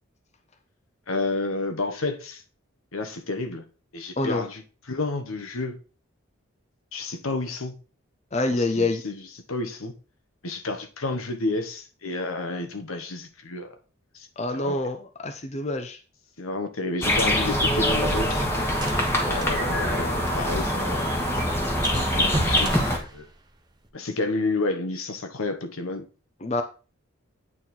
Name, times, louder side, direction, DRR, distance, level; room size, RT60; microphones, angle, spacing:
voice 1, 1.1-2.4 2.9-3.6 3.9-4.6 4.9-5.8 6.9-7.7 8.7-9.2 9.5-9.9 10.4-13.8 14.1-14.3 14.5-14.8 16.4-18.5 19.2-21.4 21.9-22.7 23.0-23.3 23.9-26.1, left 2 dB, 80° left, 1.2 m, -30 dB
voice 2, 8.3-9.0 14.4-16.0 26.4-26.6, left 2 dB, 30° left, 0.6 m, -26 dB
sound 1, 17.0-23.0, equal, 10° left, 1.3 m, -24 dB
sound 2, 18.8-20.7 21.0-21.1 21.4-21.5 21.8-23.9, right 1 dB, 20° right, 0.7 m, -35 dB
9.0 x 4.2 x 4.3 m
head